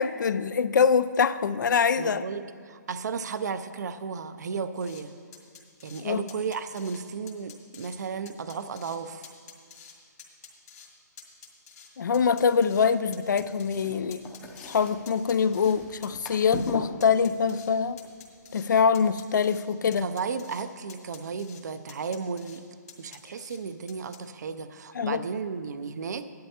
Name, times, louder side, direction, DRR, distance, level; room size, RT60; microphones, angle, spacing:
voice 1, 0.0-2.2 6.0-6.2 12.0-14.2 14.6-18.0 18.5-20.1 25.0-25.2, left 6 dB, 80° left, 15 dB, 0.4 m, -24 dB
voice 2, 2.0-5.1 5.8-9.3 20.0-22.6 23.0-26.3, right 5 dB, 65° right, 11 dB, 0.5 m, -34 dB
sound 1, 4.8-5.0 5.3-6.0 6.3-7.0 7.3-8.0 8.3-9.0 9.2-9.9 10.2-10.9 11.2-12.9 13.1-14.8 15.1-15.8 16.0-16.7 17.0-17.7 18.0-18.7 18.9-19.6 19.9-20.6 20.9-21.6 21.9-22.6 22.9-23.6 23.9-24.2, left 7 dB, 60° left, 2.2 m, -49 dB
sound 2, 13.2-19.4, left 3 dB, 10° left, 0.6 m, -41 dB
14.0 x 11.5 x 2.9 m, 2.1 s
hypercardioid pair, 165°, 10 cm